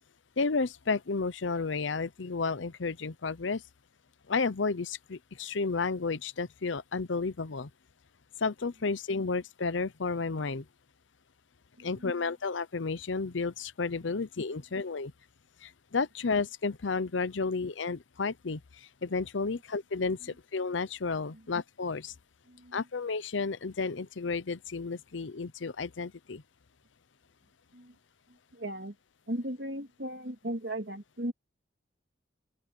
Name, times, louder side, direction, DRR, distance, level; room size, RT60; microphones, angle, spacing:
voice 1, 0.4-3.6 4.3-7.7 8.4-10.6 11.8-15.1 15.6-22.1 22.7-26.4, left 4 dB, 80° left, 0.7 m, -32 dB
voice 2, 11.8-12.2 20.2-20.3 21.3-21.5 22.5-22.9 27.7-28.0 28.3-29.0 29.3-31.3, right 1 dB, 60° right, 3.1 m, -38 dB
open air
head